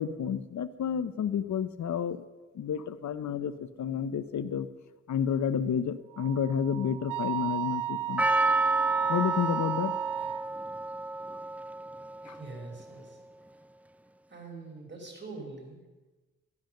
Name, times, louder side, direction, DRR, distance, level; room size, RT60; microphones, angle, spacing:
voice 1, 0.0-2.2 2.5-4.7 5.1-8.2 9.1-9.9 12.3-12.4, left 8 dB, 65° left, 14 dB, 0.7 m, -30 dB
Wind instrument woodwind instrument, 6.1-10.5, right 13 dB, 90° right, 0.6 m, -34 dB
Percussion, 8.2-12.5 12.8-12.9, right 3 dB, 5° right, 0.3 m, -30 dB
voice 2, 12.0-13.2 14.3-15.8, right 3 dB, 35° right, 2 dB, 4.8 m, -44 dB
13.0 x 12.0 x 6.6 m, 1.2 s
cardioid pair, 70°, 31 cm